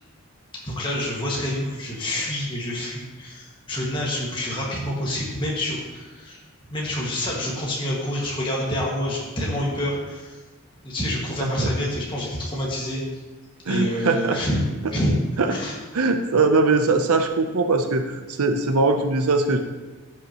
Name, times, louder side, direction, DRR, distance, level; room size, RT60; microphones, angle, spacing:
voice 1, 0.6-6.4 6.7-10.4 10.8-13.0 13.7-14.6 14.9-15.2 15.5-15.8, left 1 dB, 20° left, -4 dB, 1.7 m, -27 dB
voice 2, 13.7-14.4 15.4-15.5 15.9-19.6, right 3 dB, 85° right, 6 dB, 0.7 m, -21 dB
14.5 x 5.8 x 3.0 m, 1.3 s
head